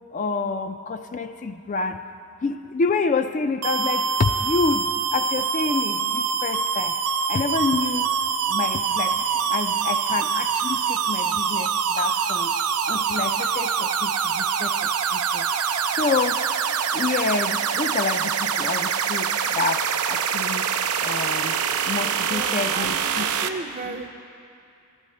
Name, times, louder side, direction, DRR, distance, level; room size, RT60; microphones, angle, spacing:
voice 1, 0.1-2.0 2.4-7.0 7.3-8.1 8.5-12.5 12.9-15.5 15.9-16.4 16.9-20.7 21.0-21.6 21.9-23.2, left 4 dB, 35° left, 8 dB, 0.3 m, -28 dB
sound 1, 3.6-23.5, right 7 dB, 85° right, 0.5 m, -25 dB
voice 2, 22.3-24.1, right 3 dB, 35° right, 6 dB, 0.5 m, -35 dB
14.0 x 11.5 x 4.1 m, 2.6 s
head